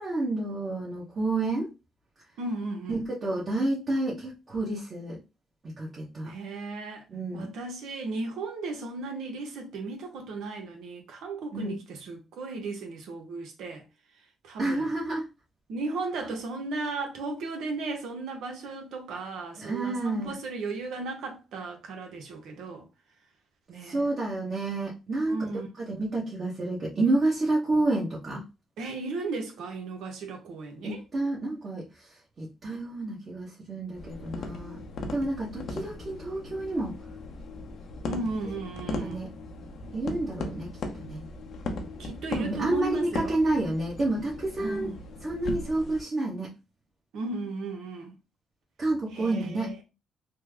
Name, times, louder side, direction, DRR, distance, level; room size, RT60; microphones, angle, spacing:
voice 1, 0.0-1.7 2.9-5.2 5.6-6.3 7.1-7.5 11.5-11.8 14.6-15.2 19.6-20.3 23.8-25.4 25.8-28.4 30.8-32.1 32.4-34.8 35.1-37.0 38.9-39.3 39.9-41.2 42.3-44.9 45.2-46.5 48.8-49.8, right 2 dB, 40° right, 1.1 m, -29 dB
voice 2, 2.4-3.0 6.2-7.0 7.3-13.8 14.4-14.9 15.7-22.9 23.7-24.1 25.3-25.7 28.8-31.0 38.1-39.2 42.0-43.4 44.6-45.0 47.1-48.2 49.1-49.8, right 3 dB, 80° right, 0.9 m, -35 dB
sound 1, 33.9-46.0, left 2 dB, 65° left, 0.7 m, -38 dB
3.3 x 2.1 x 3.3 m
cardioid pair, 90°, 0 cm